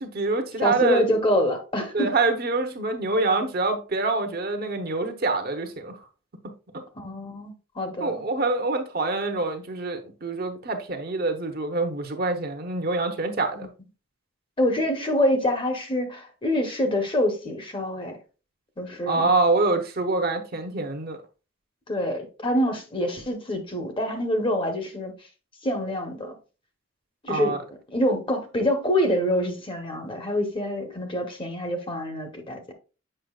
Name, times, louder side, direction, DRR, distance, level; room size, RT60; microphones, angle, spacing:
voice 1, 0.0-1.0 1.9-6.0 8.0-13.7 19.1-21.2 27.3-27.6, right 3 dB, 50° right, 0.9 m, -25 dB
voice 2, 0.6-2.1 7.0-8.2 13.5-13.7 14.6-18.2 18.8-19.3 21.9-25.1 25.6-26.4 27.2-27.6 27.9-32.7, left 1 dB, 25° left, 1.0 m, -26 dB
7.7 x 5.6 x 2.3 m
head